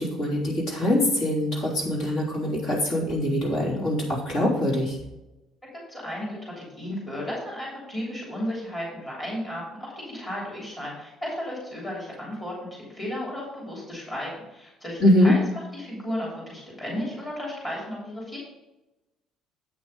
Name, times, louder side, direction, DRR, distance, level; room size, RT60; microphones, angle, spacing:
voice 1, 0.0-5.0 15.0-15.4, left 1 dB, 55° left, -4 dB, 3.5 m, -23 dB
voice 2, 5.9-15.4 15.7-18.4, equal, 15° left, -5 dB, 3.1 m, -34 dB
8.5 x 6.1 x 5.3 m, 0.98 s
cardioid pair, 170°, 0 cm